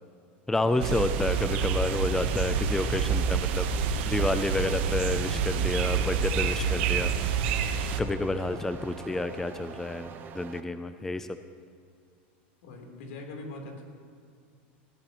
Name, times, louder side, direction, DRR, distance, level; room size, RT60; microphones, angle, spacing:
voice 1, 0.5-3.7 4.1-7.5 8.0-11.3, left 2 dB, 5° left, 10 dB, 0.5 m, -30 dB
sound 1, 0.6-10.6, right 6 dB, 30° right, 1.0 m, -44 dB
sound 2, 0.8-8.0, right 6 dB, 70° right, 1.3 m, -27 dB
voice 2, 1.3-1.7 3.1-3.3 12.6-13.8, left 2 dB, 75° left, 1 dB, 3.7 m, -42 dB
19.5 x 16.5 x 3.1 m, 2.4 s
supercardioid pair, 130°, 6 cm